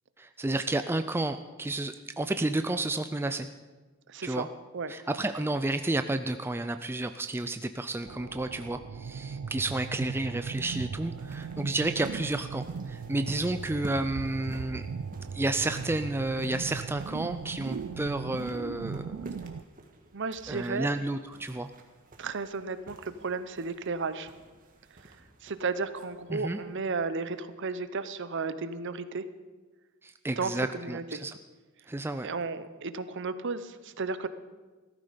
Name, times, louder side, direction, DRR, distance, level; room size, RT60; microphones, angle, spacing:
voice 1, 0.2-3.5 4.2-4.5 4.9-14.9 15.3-19.2 20.5-21.7 26.3-26.6 30.0-31.4 31.9-32.3, right 2 dB, 10° right, 9 dB, 0.4 m, -31 dB
voice 2, 4.1-4.5 4.7-4.9 20.1-20.9 22.2-24.3 25.4-29.2 30.4-31.2 32.2-34.3, right 4 dB, 55° right, 12 dB, 0.8 m, -33 dB
sound 1, 8.1-19.6, right 5 dB, 80° right, 0.4 m, -38 dB
sound 2, 10.0-27.6, right 1 dB, 40° right, 1.6 m, -51 dB
16.0 x 14.0 x 5.1 m, 1.3 s
head